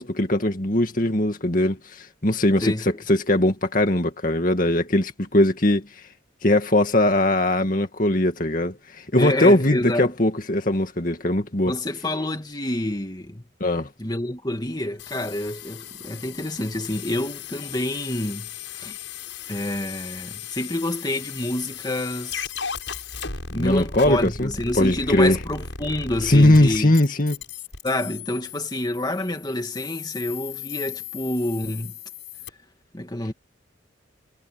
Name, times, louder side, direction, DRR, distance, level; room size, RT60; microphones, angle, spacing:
voice 1, 0.0-5.9 6.4-11.7 13.6-13.9 23.6-24.5 24.8-25.4 26.2-27.4, left 1 dB, 45° left, 2.3 m, -20 dB
voice 2, 2.6-3.0 9.2-10.1 11.7-13.4 14.0-19.0 19.5-22.5 23.5-26.9 27.8-32.0 32.9-33.3, left 1 dB, 20° left, 2.4 m, -28 dB
sound 1, 15.0-32.5, left 6 dB, 80° left, 7.8 m, -37 dB
head